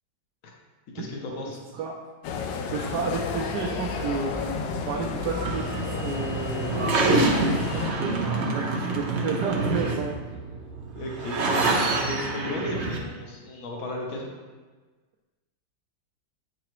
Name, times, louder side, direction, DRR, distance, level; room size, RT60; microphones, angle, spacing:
voice 1, 0.9-1.6 7.5-7.6 11.0-14.3, left 2 dB, 55° left, 0 dB, 1.3 m, -35 dB
sound 1, 2.2-7.9, left 5 dB, 85° left, 1.3 m, -32 dB
voice 2, 2.7-10.1, right 5 dB, 75° right, -2 dB, 1.2 m, -32 dB
sound 2, 5.2-13.0, right 3 dB, 50° right, 0.9 m, -27 dB
8.3 x 4.8 x 3.0 m, 1.4 s
omnidirectional pair, 1.9 m